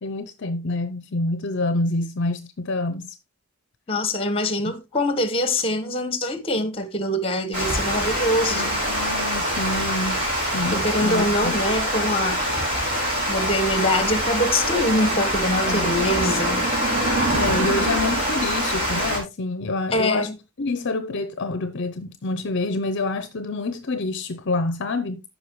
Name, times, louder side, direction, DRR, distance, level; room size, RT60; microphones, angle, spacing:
voice 1, 0.0-3.2 8.5-11.5 15.6-16.0 17.3-20.3 20.6-25.2, left 2 dB, 55° left, 0.7 m, -27 dB
voice 2, 3.9-8.7 10.7-12.4 13.3-16.7 19.9-20.4, left 1 dB, 25° left, 1.3 m, -24 dB
Water, 7.5-19.2, equal, 35° right, 4.4 m, -24 dB
13.5 x 5.2 x 3.1 m
head